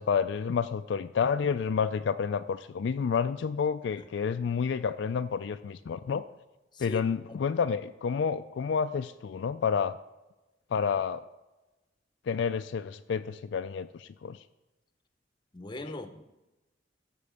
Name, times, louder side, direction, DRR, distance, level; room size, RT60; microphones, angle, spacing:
voice 1, 0.0-6.3 6.8-10.0 10.7-11.2 12.3-14.4, left 6 dB, 70° left, 10 dB, 0.4 m, -29 dB
voice 2, 6.7-7.0 7.3-7.4 15.5-16.3, left 1 dB, 25° left, 9 dB, 0.7 m, -40 dB
12.0 x 4.4 x 6.9 m, 1.1 s
head